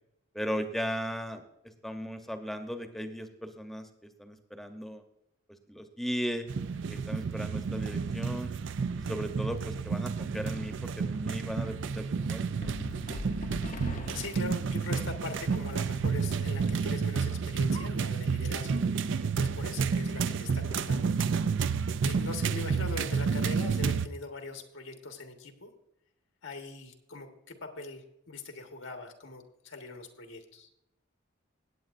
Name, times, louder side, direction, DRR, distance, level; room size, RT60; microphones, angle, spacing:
voice 1, 0.3-5.0 5.7-6.5 6.9-8.5 9.0-12.5 19.2-19.3, equal, ahead, 6 dB, 0.9 m, -37 dB
sound 1, 6.5-24.1, right 5 dB, 65° right, 0.4 m, -30 dB
sound 2, 12.6-16.1, left 2 dB, 40° left, 0.6 m, -42 dB
voice 2, 13.7-21.1 21.6-21.8 22.0-25.7 26.4-30.7, left 3 dB, 85° left, 4 dB, 1.5 m, -42 dB
17.0 x 8.9 x 2.6 m, 0.84 s
head